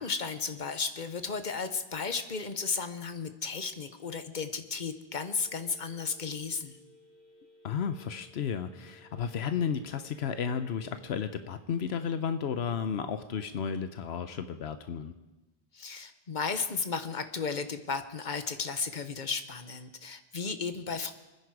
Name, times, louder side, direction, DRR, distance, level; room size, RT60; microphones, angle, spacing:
voice 1, 0.0-6.8 15.7-21.1, left 5 dB, 50° left, 10 dB, 1.1 m, -34 dB
Telephone, 5.1-11.1, left 1 dB, 70° left, 5.2 m, -59 dB
voice 2, 7.6-15.1, left 7 dB, 85° left, 10 dB, 1.0 m, -33 dB
26.5 x 10.0 x 4.8 m, 1.1 s
omnidirectional pair, 1.0 m